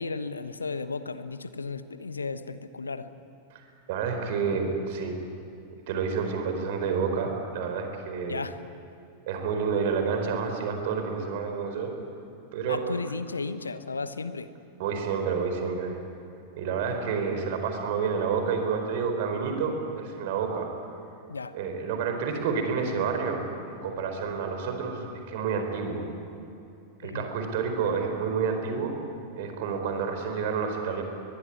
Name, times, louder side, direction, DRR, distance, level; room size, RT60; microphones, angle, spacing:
voice 1, 0.0-3.1 8.2-8.6 12.7-14.5 21.3-21.6 27.0-27.3, left 4 dB, 75° left, 13 dB, 1.1 m, -34 dB
voice 2, 3.5-5.2 5.9-8.4 9.3-11.9 12.5-12.8 14.8-16.0 16.5-20.7 21.5-23.4 23.7-26.1 27.0-28.9 29.4-31.0, right 5 dB, 50° right, 5 dB, 4.4 m, -29 dB
22.5 x 22.0 x 9.7 m, 2.7 s
figure-of-eight pair, 90°, 0 cm